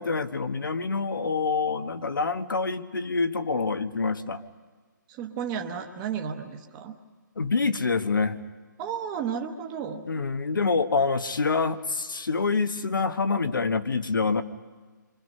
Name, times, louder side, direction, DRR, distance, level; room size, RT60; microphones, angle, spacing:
voice 1, 0.0-4.4 7.4-8.4 10.1-14.4, left 4 dB, 85° left, 8 dB, 1.5 m, -26 dB
voice 2, 5.1-7.0 8.8-10.1, right 7 dB, 15° right, 3 dB, 1.0 m, -33 dB
27.5 x 25.0 x 5.6 m, 1.4 s
hypercardioid pair, 170°, 11 cm